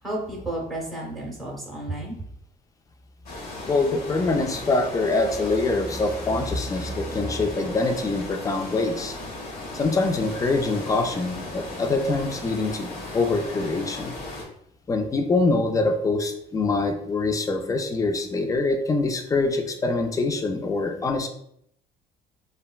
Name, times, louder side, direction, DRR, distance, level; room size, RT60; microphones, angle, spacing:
voice 1, 0.0-2.1, right 1 dB, ahead, -3 dB, 0.8 m, -32 dB
sound 1, 3.2-14.4, left 2 dB, 65° left, 1.0 m, -36 dB
voice 2, 3.7-9.2 9.7-14.1 14.9-21.3, left 3 dB, 20° left, 5 dB, 0.3 m, -24 dB
3.3 x 2.2 x 2.2 m, 0.71 s
cardioid pair, 110°, 17 cm